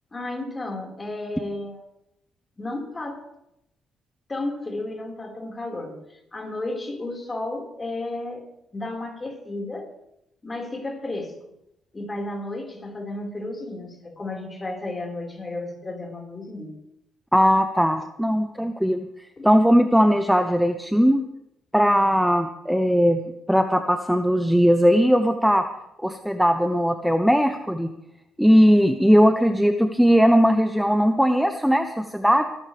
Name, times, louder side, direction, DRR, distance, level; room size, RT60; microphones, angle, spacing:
voice 1, 0.1-1.8 2.6-3.2 4.3-8.5 8.7-9.9 10.4-11.4 11.9-16.7 19.4-19.5, left 2 dB, 25° left, 1 dB, 5.0 m, -33 dB
voice 2, 17.3-19.1 19.4-21.2 21.7-23.2 23.5-25.6 26.0-27.9 28.4-32.4, equal, ahead, 7 dB, 1.0 m, -19 dB
24.0 x 13.5 x 3.5 m, 0.83 s
cardioid pair, 90°, 0 cm